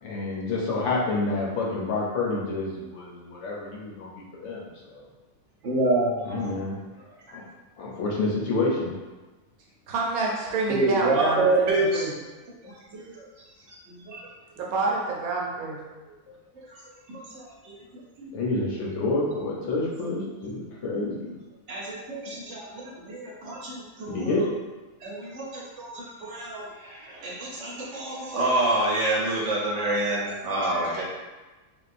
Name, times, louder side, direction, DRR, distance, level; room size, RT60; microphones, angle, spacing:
voice 1, 0.0-5.0 6.3-7.4 7.8-8.9 16.3-16.4 18.3-21.3 24.1-24.5, left 2 dB, 65° left, -4 dB, 0.9 m, -29 dB
voice 2, 5.6-6.5 7.3-7.4 10.7-12.1 12.9-13.3 13.9-14.2 17.1-17.7 18.2-18.3 20.9-21.0 21.7-24.4 25.0-31.0, right 2 dB, 60° right, -4 dB, 1.0 m, -27 dB
voice 3, 9.9-12.1 14.6-15.8, right 3 dB, 90° right, -2 dB, 1.1 m, -28 dB
3.5 x 2.3 x 2.5 m, 1.2 s
omnidirectional pair, 1.5 m